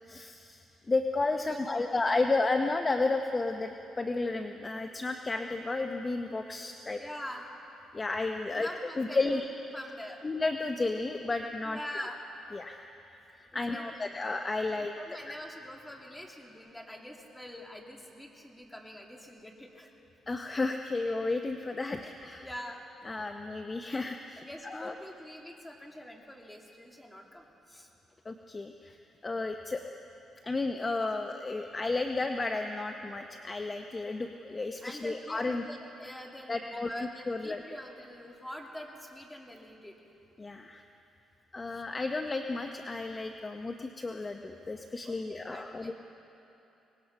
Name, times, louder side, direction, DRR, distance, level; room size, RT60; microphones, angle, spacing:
voice 1, 0.1-7.0 7.9-8.7 9.0-9.4 10.2-11.8 12.5-12.8 13.4-14.9 20.3-22.5 23.0-24.9 28.2-29.0 29.2-29.8 30.4-35.6 36.5-37.6 40.4-40.8 41.5-45.9, left 3 dB, 25° left, 5 dB, 0.9 m, -32 dB
voice 2, 1.4-2.2 7.0-7.5 8.5-9.4 9.7-10.2 11.7-12.2 13.5-14.2 14.7-19.9 22.4-22.8 24.4-27.9 34.8-40.0 41.7-41.8 45.0-45.9, left 1 dB, 10° left, 1 dB, 2.6 m, -45 dB
24.0 x 19.5 x 5.8 m, 2.9 s
cardioid pair, 90°, 0 cm